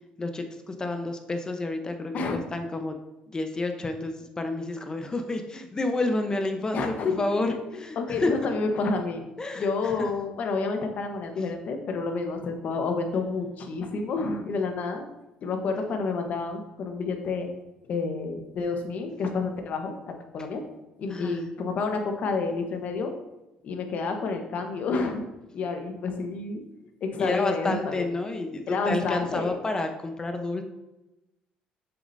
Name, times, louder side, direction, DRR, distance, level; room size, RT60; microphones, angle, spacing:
voice 1, 0.2-3.0 3.3-8.3 9.4-9.7 10.0-10.1 21.1-21.4 27.2-30.6, left 2 dB, 25° left, 6 dB, 0.9 m, -30 dB
voice 2, 6.7-9.3 9.5-15.0 15.4-17.5 17.9-19.9 20.3-20.6 21.0-23.1 23.6-25.2 25.5-26.6 27.0-28.1 28.7-29.6, left 4 dB, 55° left, 4 dB, 1.2 m, -29 dB
7.2 x 6.9 x 2.7 m, 0.98 s
supercardioid pair, 90°, 3 cm